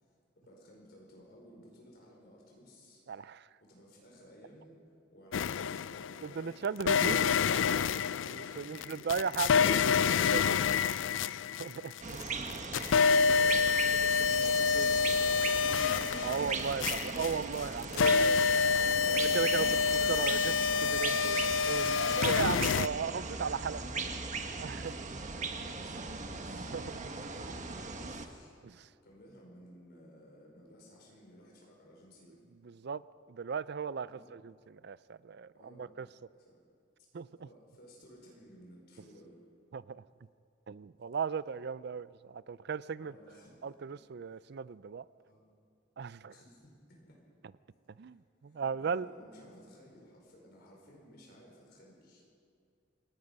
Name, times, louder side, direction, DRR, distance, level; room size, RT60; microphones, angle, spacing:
voice 1, 0.0-3.0 3.6-4.8 5.1-7.7 8.2-9.9 12.0-12.8 13.3-16.0 17.5-18.0 21.3-24.4 24.8-26.7 27.5-28.6 29.0-32.4 34.0-34.3 35.6-36.0 36.4-36.6 37.4-39.4 43.0-43.6 44.2-44.4 45.2-45.5 46.3-47.2 48.0-52.2, equal, 55° left, -2 dB, 5.0 m, -56 dB
voice 2, 3.1-3.5 6.2-7.3 8.2-10.0 10.3-10.8 11.6-11.9 16.2-18.6 19.1-20.6 20.8-23.8 24.6-24.9 26.7-27.3 28.6-28.9 32.6-33.0 33.3-36.1 37.1-37.3 39.7-40.0 40.7-43.1 43.6-45.0 46.0-46.3 48.0-49.1, right 6 dB, 60° right, 18 dB, 0.4 m, -37 dB
sound 1, 5.3-6.2 6.8-12.2 12.5-22.9, left 6 dB, 75° left, 0.4 m, -28 dB
sound 2, 12.0-28.3, right 4 dB, 40° right, 1.4 m, -38 dB
28.0 x 18.5 x 5.4 m, 2.3 s
head